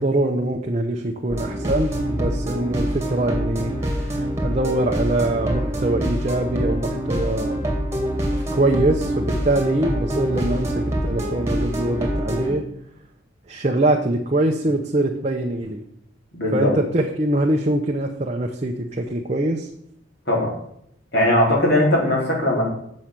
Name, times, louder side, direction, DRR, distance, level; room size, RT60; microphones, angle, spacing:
voice 1, 0.0-7.6 8.5-12.6 13.5-15.8 16.5-19.7, right 1 dB, 35° right, 2 dB, 0.7 m, -23 dB
sound 1, 1.3-12.5, equal, 15° right, 2.1 m, -25 dB
voice 2, 16.4-16.7 20.3-20.5 21.1-22.6, left 1 dB, 55° left, -3 dB, 3.9 m, -19 dB
8.3 x 6.4 x 5.9 m, 0.74 s
head